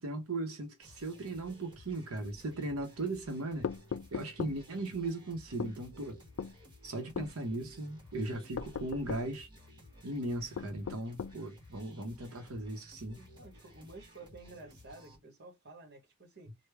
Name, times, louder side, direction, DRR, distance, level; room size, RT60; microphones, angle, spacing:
voice 1, 0.0-3.7 4.1-6.2 6.8-9.5 10.0-13.2, right 2 dB, 85° right, 0.8 m, -37 dB
sound 1, 0.8-15.2, equal, 20° right, 1.2 m, -56 dB
sound 2, 3.6-4.6 5.6-5.8 6.4-6.6 7.1-7.3 8.5-9.3 10.5-11.4, left 6 dB, 60° left, 0.3 m, -38 dB
voice 2, 13.2-16.6, right 2 dB, 50° right, 1.0 m, -52 dB
3.3 x 2.2 x 3.3 m
head